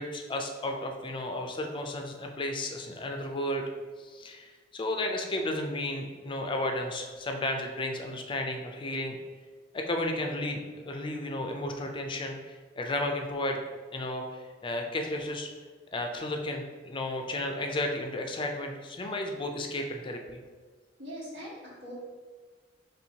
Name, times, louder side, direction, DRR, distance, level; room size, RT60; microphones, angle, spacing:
voice 1, 0.0-3.6 4.0-9.2 9.7-13.6 13.9-15.5 15.9-20.4, left 1 dB, 25° left, 3 dB, 0.4 m, -33 dB
voice 2, 21.0-21.9, equal, 80° right, -9 dB, 1.4 m, -41 dB
4.4 x 3.2 x 2.8 m, 1.5 s
head